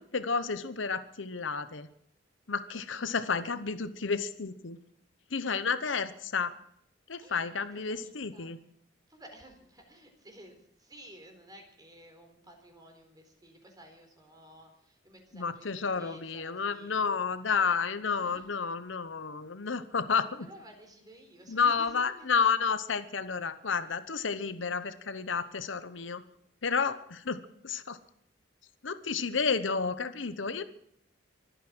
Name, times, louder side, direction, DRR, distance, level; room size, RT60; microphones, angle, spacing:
voice 1, 0.0-1.9 2.5-4.8 5.3-6.5 7.1-8.6 15.3-20.5 21.5-26.2 26.6-28.0 28.8-30.6, left 5 dB, 85° left, 12 dB, 1.0 m, -31 dB
voice 2, 7.2-8.5 9.1-17.2 18.1-18.5 20.4-22.3, equal, 20° right, 4 dB, 4.0 m, -53 dB
24.0 x 9.3 x 6.2 m, 0.71 s
head